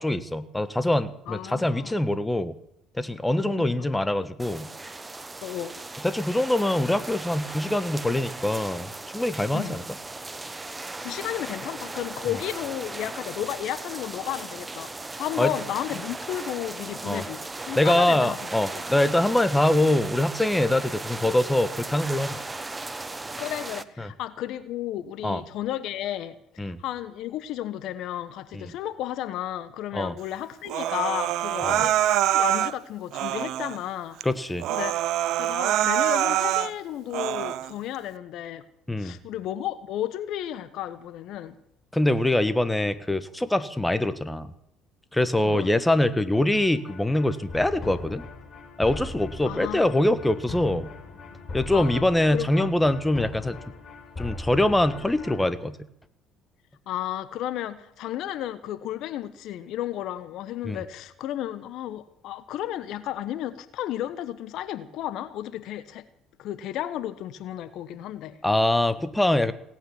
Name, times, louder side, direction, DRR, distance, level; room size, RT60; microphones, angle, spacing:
voice 1, 0.0-2.5 3.0-4.7 6.0-9.8 15.4-15.5 17.0-17.2 17.8-22.4 24.0-24.1 25.2-25.4 26.6-26.8 28.5-28.6 29.9-30.1 31.6-31.9 34.2-34.7 38.9-39.2 41.9-44.5 45.1-48.2 48.8-50.9 51.5-53.6 54.2-55.8 60.6-60.8 68.4-69.5, left 1 dB, 10° left, 1.4 m, -24 dB
voice 2, 1.3-2.0 3.5-4.0 5.4-5.7 9.5-9.8 11.0-18.8 23.4-34.2 34.7-34.9 35.4-38.6 39.0-41.6 45.4-45.7 49.4-49.9 51.7-52.7 56.9-66.0 66.4-68.4, left 12 dB, 65° left, 1.1 m, -33 dB
sound 1, 4.4-23.8, right 2 dB, 20° right, 1.1 m, -37 dB
Human voice, 30.7-32.7 33.1-33.8 34.2-34.3 34.6-36.7 37.1-37.7, right 13 dB, 65° right, 0.6 m, -25 dB
sound 2, 46.3-55.5, left 3 dB, 35° left, 5.2 m, -40 dB
18.0 x 9.0 x 8.6 m
hypercardioid pair, 65°, 0 cm